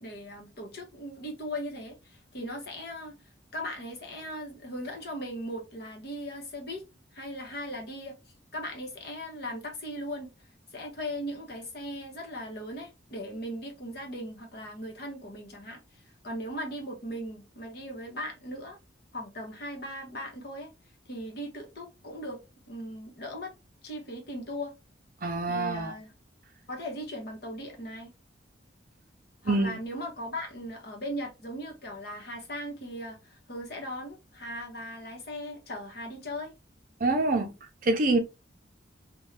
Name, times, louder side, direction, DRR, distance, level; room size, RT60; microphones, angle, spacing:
voice 1, 0.0-3.1 3.5-6.8 7.1-8.2 8.5-10.3 10.7-18.8 19.1-20.7 21.1-22.4 22.7-23.5 23.8-24.7 25.5-26.1 26.7-28.1 29.4-36.5, equal, 55° left, 1.0 m, -38 dB
voice 2, 25.2-25.9 29.4-29.8 37.0-37.5 37.8-38.2, right 2 dB, 45° right, 0.5 m, -25 dB
2.6 x 2.2 x 3.1 m
head